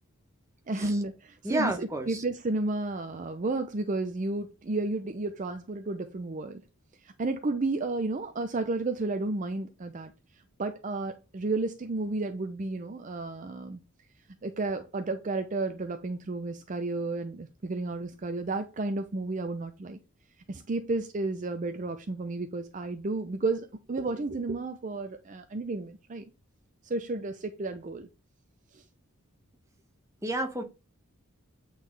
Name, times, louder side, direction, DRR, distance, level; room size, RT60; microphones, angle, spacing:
voice 1, 0.7-6.6 7.2-10.1 10.6-13.8 14.4-20.0 20.5-26.2 26.8-28.1 28.7-28.8, right 2 dB, 35° right, 0.5 m, -32 dB
voice 2, 1.4-2.2 30.2-30.6, right 1 dB, 15° right, 0.9 m, -30 dB
8.4 x 3.9 x 3.3 m
head